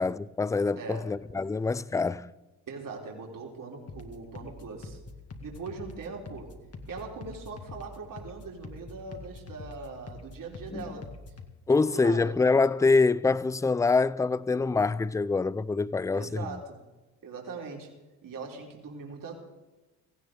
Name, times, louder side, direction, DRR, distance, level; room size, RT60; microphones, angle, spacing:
voice 1, 0.0-2.3 10.7-10.8 11.7-16.5, left 4 dB, 10° left, 0.4 m, -25 dB
voice 2, 0.8-1.1 2.7-5.0 5.4-6.5 6.9-11.1 11.9-12.4 16.1-16.8 17.2-17.9 18.2-19.3, right 4 dB, 50° right, 3.8 m, -41 dB
sound 1, 3.9-11.5, left 3 dB, 35° left, 2.1 m, -45 dB
17.5 x 15.5 x 3.9 m
supercardioid pair, 70°, 41 cm